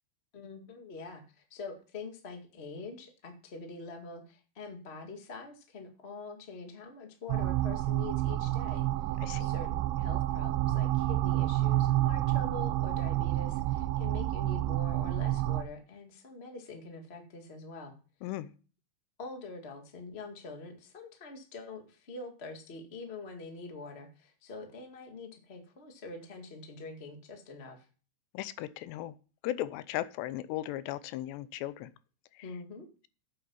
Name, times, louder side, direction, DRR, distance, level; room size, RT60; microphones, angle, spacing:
voice 1, 0.3-8.9 9.4-17.9 19.2-27.8 32.4-32.8, left 3 dB, 45° left, 3 dB, 0.8 m, -44 dB
sound 1, 7.3-15.6, right 14 dB, 80° right, 2.6 m, -29 dB
voice 2, 18.2-18.5 28.3-29.1 29.4-31.9 32.3-32.5, left 14 dB, 85° left, 15 dB, 2.8 m, -36 dB
8.9 x 8.6 x 5.5 m, 0.36 s
omnidirectional pair, 4.9 m